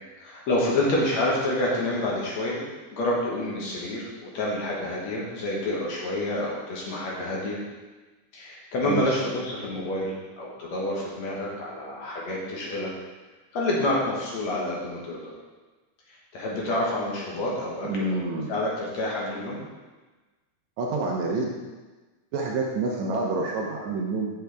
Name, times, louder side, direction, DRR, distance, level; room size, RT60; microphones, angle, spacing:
voice 1, 0.2-2.6 2.9-7.6 8.3-12.9 13.5-15.3 16.1-18.2 18.5-19.6, left 1 dB, 60° left, -4 dB, 2.4 m, -28 dB
voice 2, 17.8-18.5 20.8-21.5 22.3-24.3, right 3 dB, 70° right, -1 dB, 1.9 m, -28 dB
7.9 x 6.1 x 3.5 m, 1.2 s
omnidirectional pair, 3.6 m